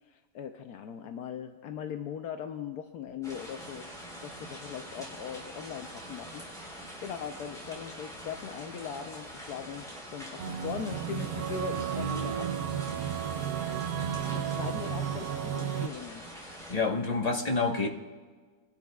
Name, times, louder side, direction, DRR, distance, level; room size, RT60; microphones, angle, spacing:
voice 1, 0.1-3.9 4.2-9.9 10.1-12.5 14.3-16.2, left 8 dB, 80° left, 5 dB, 1.3 m, -40 dB
sound 1, 3.2-16.7, equal, ahead, 4.1 m, -44 dB
sound 2, 10.4-15.9, right 9 dB, 70° right, 1.0 m, -33 dB
voice 2, 16.7-17.9, left 3 dB, 25° left, 1 dB, 1.2 m, -28 dB
23.0 x 12.0 x 2.3 m, 1.4 s
omnidirectional pair, 1.7 m